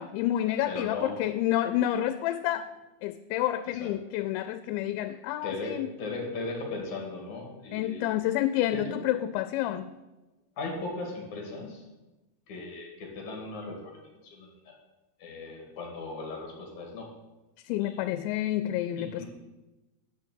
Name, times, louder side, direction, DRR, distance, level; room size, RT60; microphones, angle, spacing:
voice 1, 0.0-2.7 3.0-5.9 7.7-9.9 17.7-19.3, left 13 dB, 85° left, 11 dB, 2.8 m, -29 dB
voice 2, 0.7-1.2 3.7-3.9 5.4-8.1 8.7-9.0 10.6-11.9 12.5-14.7 15.2-17.1 17.8-18.0 19.0-19.3, left 3 dB, 50° left, 0 dB, 2.8 m, -37 dB
10.0 x 6.4 x 7.7 m, 1.1 s
omnidirectional pair, 5.2 m